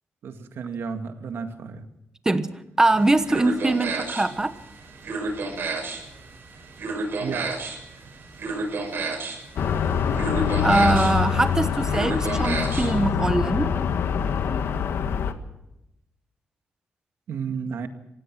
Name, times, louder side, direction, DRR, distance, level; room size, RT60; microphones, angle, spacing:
voice 1, 0.2-1.9 7.2-7.5 17.3-17.9, right 6 dB, 80° right, 7 dB, 2.0 m, -32 dB
voice 2, 2.8-4.5 10.6-13.7, right 2 dB, 15° right, 11 dB, 1.2 m, -22 dB
sound 1, 2.8-13.1, right 3 dB, 60° right, 6.3 m, -32 dB
sound 2, 9.6-15.3, left 7 dB, 80° left, 1.6 m, -24 dB
26.5 x 16.5 x 6.1 m, 0.86 s
wide cardioid pair, 165°, 4 cm